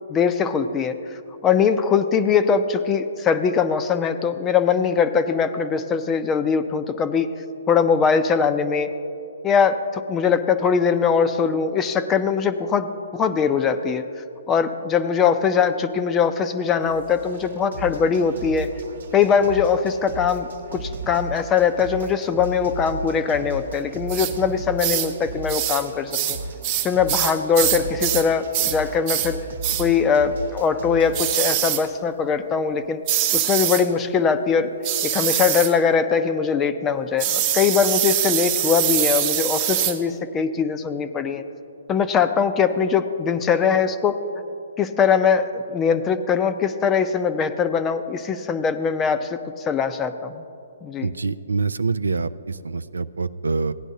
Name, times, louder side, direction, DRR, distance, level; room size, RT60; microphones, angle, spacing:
voice 1, 0.1-7.3 7.7-8.9 9.4-14.0 14.5-18.7 19.1-26.4 26.8-29.4 29.8-33.0 33.3-34.7 35.0-41.4 41.9-44.2 44.8-50.4 50.8-51.1, left 6 dB, 20° left, 10 dB, 0.5 m, -21 dB
sound 1, 16.9-31.2, right 2 dB, 70° right, 0.9 m, -36 dB
sound 2, 24.1-24.3 24.8-25.1 25.5-25.8 26.1-28.3 28.5-28.8 29.1-29.3 29.6-29.9 31.1-31.8 33.1-33.9 34.8-35.7 37.2-40.0, right 11 dB, 35° right, 0.8 m, -23 dB
voice 2, 51.0-53.7, right 4 dB, 90° right, 14 dB, 0.3 m, -25 dB
16.5 x 10.0 x 2.7 m, 2.6 s
hypercardioid pair, 140°, 0 cm